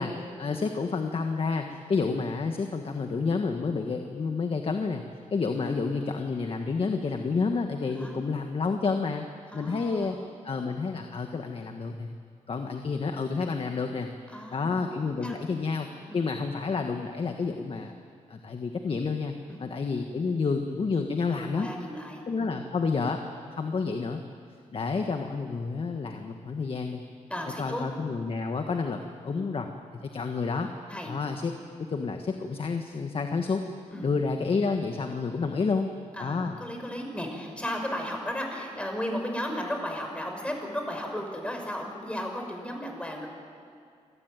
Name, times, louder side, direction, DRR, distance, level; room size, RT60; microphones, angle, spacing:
voice 1, 0.0-5.0 5.3-9.3 9.5-10.2 10.4-12.1 12.5-14.1 14.5-15.9 16.1-17.9 18.3-19.3 19.6-21.7 22.3-23.2 23.5-24.2 24.7-27.0 27.6-29.7 30.0-30.7 31.1-31.5 31.8-33.6 34.0-35.9 36.2-36.6, left 4 dB, 45° left, 5 dB, 1.5 m, -29 dB
voice 2, 9.5-10.3 14.3-15.5 16.1-16.2 19.5-19.6 21.3-22.6 27.3-27.9 29.3-29.5 30.9-31.1 33.9-34.1 36.1-43.3, equal, 10° left, 3 dB, 5.4 m, -35 dB
27.0 x 18.5 x 9.2 m, 2.3 s
cardioid pair, 100°, 13 cm